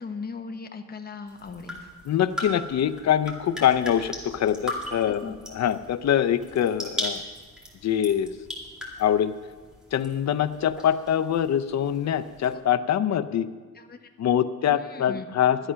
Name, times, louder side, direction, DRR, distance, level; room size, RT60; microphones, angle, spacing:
voice 1, 0.0-1.9 5.0-5.4 12.5-12.6 13.7-14.1 14.7-15.2, left 5 dB, 30° left, 5 dB, 1.0 m, -38 dB
sound 1, 1.3-12.5, left 1 dB, ahead, 2.4 m, -39 dB
voice 2, 2.1-7.2 7.8-8.3 9.0-9.3 9.9-13.5 14.2-15.6, left 9 dB, 60° left, 11 dB, 0.6 m, -24 dB
12.5 x 11.5 x 5.7 m, 1.5 s
wide cardioid pair, 155°, 30 cm